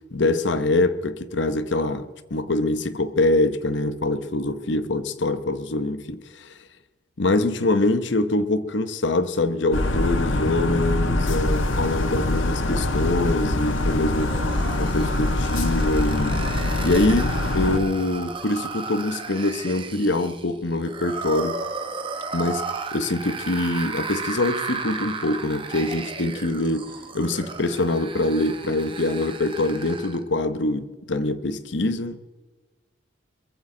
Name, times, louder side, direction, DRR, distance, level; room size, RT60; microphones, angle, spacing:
voice 1, 0.1-6.5 7.2-14.3 14.6-16.4 16.8-21.6 22.3-26.9 27.1-32.2, left 2 dB, 65° left, 0.9 m, -24 dB
sound 1, 9.7-17.8, left 1 dB, 85° left, 1.3 m, -24 dB
sound 2, 13.6-30.2, right 4 dB, 25° right, 1.3 m, -34 dB
23.0 x 15.0 x 3.9 m
head